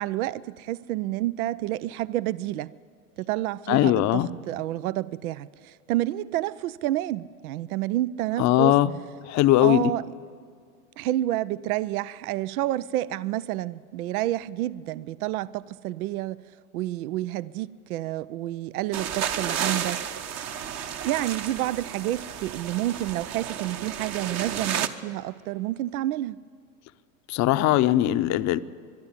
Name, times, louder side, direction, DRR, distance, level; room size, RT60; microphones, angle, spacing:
voice 1, 0.0-2.7 3.2-8.7 9.6-10.0 11.0-16.4 16.7-20.0 21.0-26.4, right 15 dB, 70° right, 19 dB, 0.6 m, -29 dB
voice 2, 3.7-4.3 8.4-8.9 9.3-9.9 27.3-28.6, left 14 dB, 40° left, 13 dB, 0.7 m, -20 dB
sound 1, 18.9-24.9, right 8 dB, 35° right, 1.1 m, -32 dB
22.0 x 12.0 x 9.8 m, 2.2 s
hypercardioid pair, 105°, 44 cm